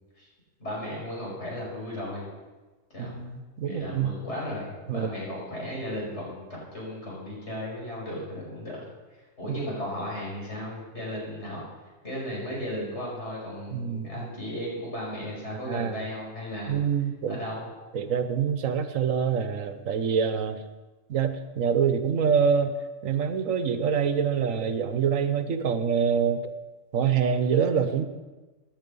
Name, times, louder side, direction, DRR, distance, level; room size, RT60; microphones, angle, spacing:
voice 1, 0.6-2.2 2.9-3.2 3.6-8.8 9.4-11.6 12.0-16.8 17.3-17.7, left 1 dB, 55° left, -4 dB, 5.9 m, -35 dB
voice 2, 3.0-4.1 4.9-5.1 9.5-9.6 13.7-14.3 15.7-16.0 16.7-17.4 17.9-20.6 21.1-22.8 23.0-26.4 26.9-28.0, right 7 dB, 80° right, 10 dB, 1.3 m, -25 dB
16.5 x 10.5 x 5.4 m, 1.2 s
omnidirectional pair, 1.4 m